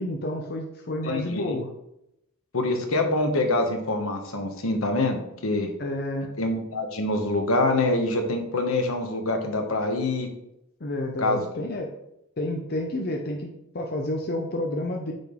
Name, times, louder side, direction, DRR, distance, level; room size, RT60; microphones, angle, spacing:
voice 1, 0.0-1.7 5.8-6.3 10.8-11.9 12.4-13.5 13.7-15.1, left 1 dB, 45° left, 2 dB, 0.7 m, -30 dB
voice 2, 1.0-1.6 2.5-5.7 6.4-10.3 11.2-11.4, left 2 dB, 70° left, 4 dB, 1.1 m, -25 dB
8.9 x 3.8 x 3.7 m, 0.82 s
head